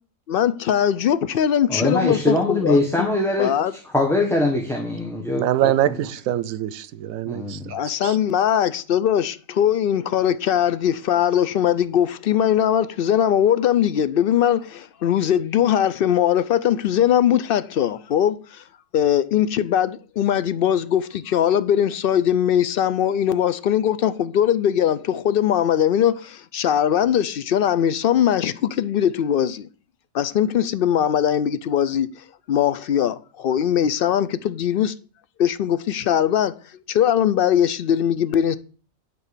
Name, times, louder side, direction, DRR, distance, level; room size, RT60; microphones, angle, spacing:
voice 1, 0.3-3.1 3.4-3.7 7.7-18.6 18.9-29.7 30.1-34.9 35.4-36.5 36.9-38.6, left 9 dB, 65° left, 0.6 m, -20 dB
voice 2, 1.7-3.5 3.9-6.0 7.3-7.7, left 2 dB, ahead, 1.0 m, -22 dB
voice 3, 5.3-7.8 8.0-8.2, right 12 dB, 90° right, 1.0 m, -24 dB
10.0 x 4.1 x 6.7 m
omnidirectional pair, 1.4 m